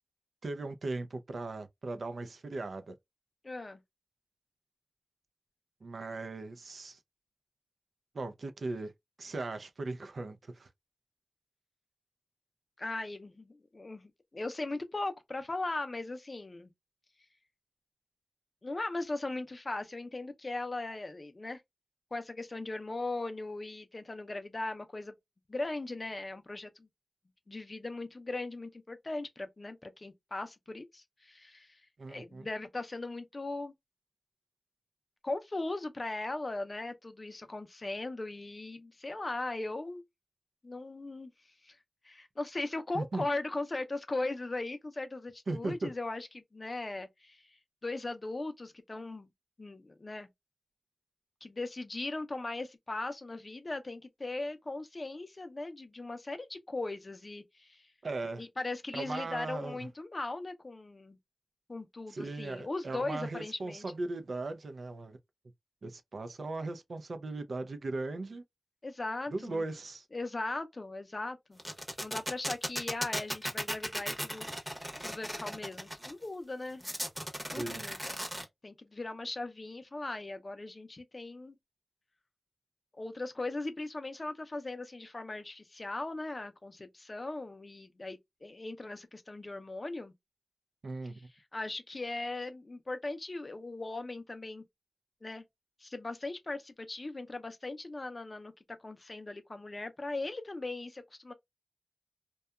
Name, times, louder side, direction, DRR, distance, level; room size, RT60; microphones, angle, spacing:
voice 1, 0.4-2.9 5.8-7.0 8.1-8.9 9.2-10.7 32.0-32.5 42.9-43.2 45.5-45.9 58.0-58.4 58.9-59.9 62.1-65.2 65.8-68.4 69.3-70.0 77.5-77.9 90.8-91.2, right 2 dB, 75° right, 0.4 m, -38 dB
voice 2, 3.4-3.8 12.8-16.7 18.6-21.6 22.1-25.1 25.5-26.9 27.5-31.8 32.1-33.7 35.2-40.0 40.6-41.3 41.6-41.8 42.0-47.5 47.8-49.3 49.6-50.3 51.4-57.9 58.4-61.2 61.7-63.9 68.8-69.6 70.1-71.6 72.0-74.5 75.0-76.8 77.5-78.2 78.6-81.6 83.0-90.1 91.5-94.6 95.2-95.4 95.8-98.5 98.8-101.3, left 2 dB, 40° left, 0.5 m, -38 dB
sound 1, 71.6-76.1 76.8-78.4, equal, 5° right, 0.7 m, -36 dB
2.7 x 2.2 x 2.2 m
wide cardioid pair, 70°, 0 cm